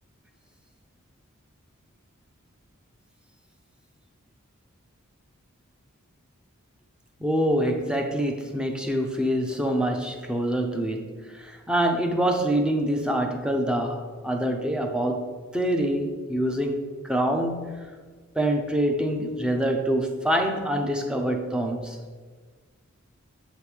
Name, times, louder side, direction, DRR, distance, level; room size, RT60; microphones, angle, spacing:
voice 1, 7.2-15.2 15.5-17.9 18.3-22.0, right 1 dB, 5° right, 3 dB, 0.6 m, -25 dB
8.0 x 5.0 x 5.0 m, 1.5 s
head